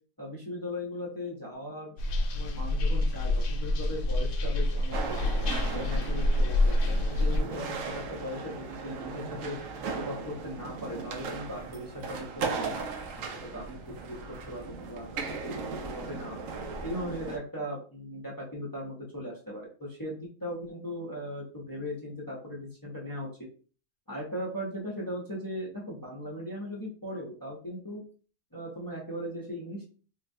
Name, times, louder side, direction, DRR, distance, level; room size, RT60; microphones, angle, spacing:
voice 1, 0.2-2.0 2.3-5.3 5.7-9.6 10.0-12.7 13.2-16.3 16.8-23.3 24.1-28.0 28.5-29.8, equal, 20° left, -4 dB, 0.6 m, -38 dB
sound 1, 2.0-7.4, left 1 dB, 80° left, 1.0 m, -27 dB
sound 2, 4.9-17.4, right 4 dB, 90° right, 1.0 m, -37 dB
3.8 x 2.3 x 2.6 m, 0.39 s
omnidirectional pair, 1.3 m